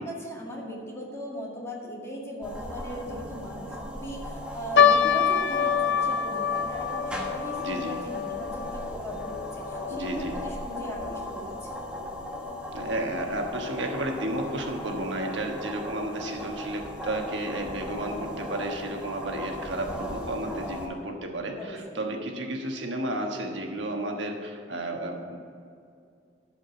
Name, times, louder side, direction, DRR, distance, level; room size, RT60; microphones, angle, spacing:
voice 1, 0.0-11.7 21.6-22.0, equal, 15° left, -3 dB, 1.9 m, -38 dB
sound 1, 2.4-20.9, left 1 dB, 5° right, 1.2 m, -38 dB
sound 2, 4.8-11.3 11.5-11.6 12.4-12.7 13.3-13.4 13.7-13.9, left 7 dB, 65° left, 0.5 m, -26 dB
voice 2, 7.6-8.0 9.9-10.4 12.7-25.4, right 1 dB, 75° right, 2 dB, 1.3 m, -32 dB
11.5 x 5.1 x 8.4 m, 2.4 s
head